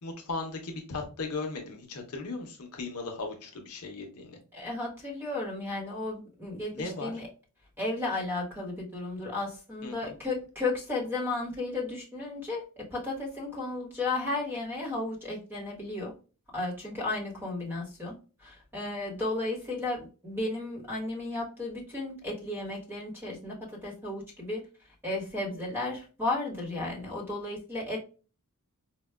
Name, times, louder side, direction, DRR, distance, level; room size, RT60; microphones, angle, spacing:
voice 1, 0.0-4.4 6.7-7.1 9.8-10.1, left 3 dB, 75° left, 3 dB, 0.7 m, -37 dB
voice 2, 4.5-7.3 7.8-16.1 16.5-18.1 18.4-24.6 25.0-28.0, left 2 dB, 10° right, -1 dB, 1.1 m, -34 dB
4.4 x 2.2 x 2.2 m, 0.35 s
head